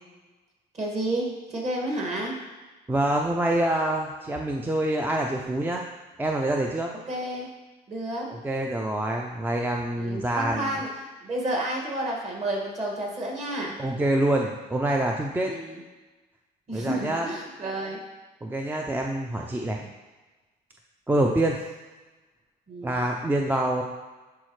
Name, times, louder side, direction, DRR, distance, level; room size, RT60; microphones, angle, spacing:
voice 1, 0.7-2.4 7.1-7.5 7.9-8.3 9.9-13.7 15.4-15.8 16.7-18.0 21.1-21.3 22.7-22.9, right 1 dB, 40° right, -1 dB, 2.0 m, -31 dB
voice 2, 2.9-5.8 6.2-6.9 8.3-10.7 13.8-15.5 16.7-17.3 18.4-19.9 21.1-21.6 22.8-23.8, right 1 dB, 10° right, 1 dB, 0.5 m, -26 dB
10.5 x 4.2 x 3.2 m, 1.2 s
cardioid pair, 110°, 17 cm